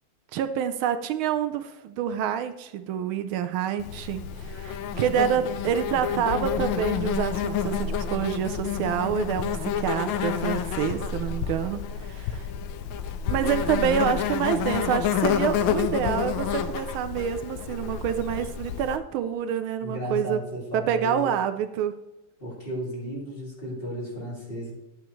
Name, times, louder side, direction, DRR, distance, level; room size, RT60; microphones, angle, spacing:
voice 1, 0.3-12.5 13.3-20.4 20.7-21.9, right 9 dB, 80° right, 9 dB, 1.4 m, -27 dB
Insect, 3.8-19.0, left 8 dB, 75° left, 1.3 m, -29 dB
voice 2, 19.8-21.3 22.4-24.7, equal, 25° left, -6 dB, 2.7 m, -34 dB
11.0 x 8.7 x 3.1 m, 0.99 s
omnidirectional pair, 2.3 m